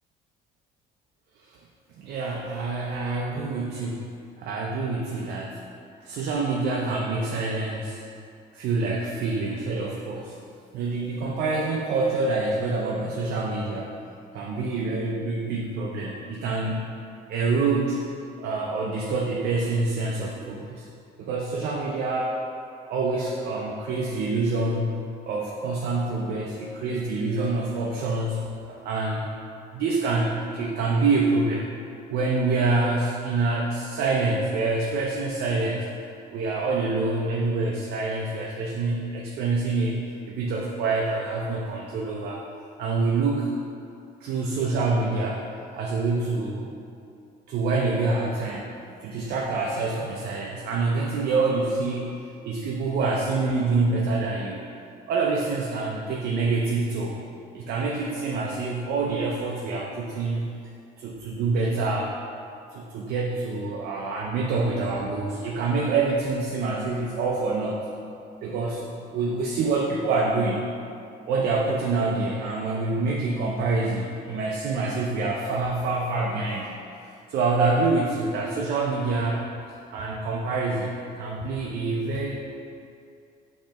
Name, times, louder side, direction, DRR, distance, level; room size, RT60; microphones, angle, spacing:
voice 1, 2.0-5.6 6.0-8.0 8.5-10.4 10.7-14.0 14.3-16.9 17.3-18.0 18.4-20.9 21.2-22.4 22.8-29.3 29.7-31.7 32.1-35.9 36.3-42.4 42.8-43.5 44.2-45.4 45.7-46.7 47.5-48.7 49.0-52.2 52.4-54.6 55.1-57.1 57.5-60.5 61.0-62.1 62.7-67.9 68.4-70.7 71.2-76.7 77.3-79.5 79.9-82.3, right 3 dB, 70° right, -2 dB, 0.5 m, -26 dB
5.2 x 2.9 x 3.4 m, 2.5 s
cardioid pair, 110°, 17 cm